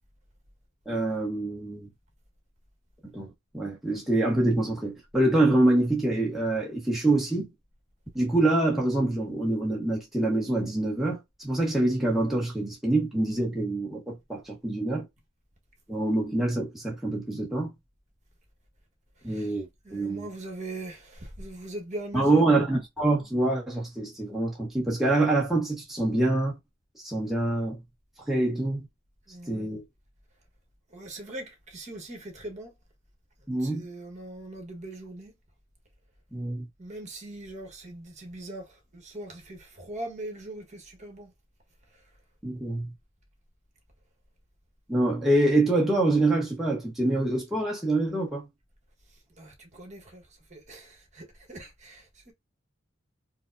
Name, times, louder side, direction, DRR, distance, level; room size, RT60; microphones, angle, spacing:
voice 1, 0.9-1.9 3.0-7.5 8.1-15.1 15.9-17.7 19.2-20.3 22.1-26.5 26.9-27.8 28.3-28.9 29.5-29.8 33.5-33.8 36.3-36.7 42.4-42.9 44.9-48.5, right 2 dB, ahead, 0.9 m, -25 dB
voice 2, 19.8-22.6 29.3-29.7 30.9-32.7 33.6-35.3 36.8-41.3 49.4-50.2 50.5-52.3, right 1 dB, 40° right, 1.2 m, -41 dB
4.8 x 2.0 x 2.5 m
head